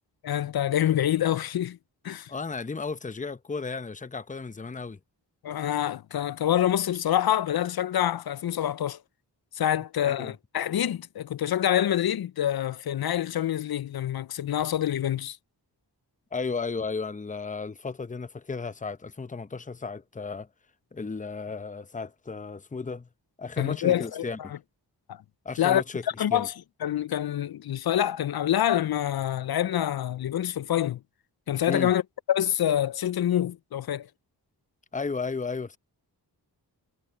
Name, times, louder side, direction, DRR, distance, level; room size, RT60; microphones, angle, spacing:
voice 1, 0.2-1.8 2.0-2.3 5.4-9.0 9.5-15.4 23.6-24.3 25.1-25.2 25.6-25.8 26.2-26.5 26.8-31.0 31.5-32.0 32.3-34.1, left 11 dB, 60° left, 0.5 m, -26 dB
voice 2, 2.3-5.0 10.0-10.3 16.3-20.5 20.9-23.1 23.4-24.6 25.4-26.0 26.3-26.5 31.7-31.9 34.9-35.8, left 4 dB, 20° left, 0.7 m, -34 dB
cardioid pair, 55°, 42 cm